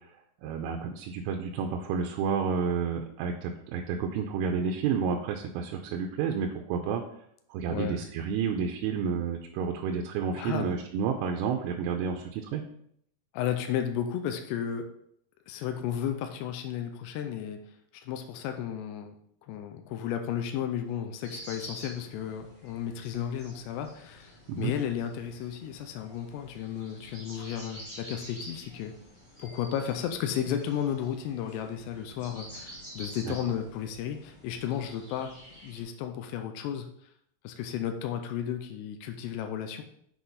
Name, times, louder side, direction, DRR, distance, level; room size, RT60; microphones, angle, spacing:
voice 1, 0.4-7.0 7.5-12.6 24.5-24.7 33.2-33.3, right 6 dB, 80° right, 3 dB, 3.2 m, -30 dB
voice 2, 7.7-8.1 10.4-10.8 13.3-14.9 15.5-17.6 17.9-19.2 19.4-28.9 29.4-35.3 35.6-36.9 37.4-39.8, left 9 dB, 85° left, 6 dB, 2.5 m, -33 dB
sound 1, 21.2-35.8, equal, 35° left, 0.7 m, -48 dB
7.8 x 6.3 x 4.0 m, 0.69 s
omnidirectional pair, 5.7 m